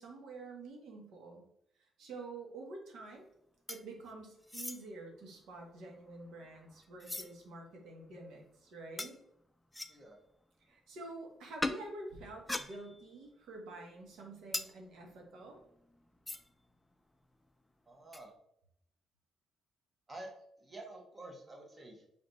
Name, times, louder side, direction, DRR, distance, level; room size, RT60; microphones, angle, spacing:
voice 1, 0.0-1.4 1.8-3.3 3.7-9.1 10.6-15.6, right 2 dB, 80° right, 1 dB, 1.4 m, -48 dB
sound 1, 3.7-4.1 4.4-4.8 5.6-7.3 7.9-8.0 9.0-9.2 9.7-10.1 11.6-11.8 12.4-13.2 13.5-16.7 16.9-17.0 17.2-17.5 18.1-18.3, left 2 dB, 10° left, 0.4 m, -42 dB
voice 2, 17.9-18.3 20.1-20.3 20.6-22.0, right 2 dB, 30° right, 1 dB, 1.3 m, -49 dB
4.1 x 3.2 x 4.0 m, 0.74 s
cardioid pair, 90°, 0 cm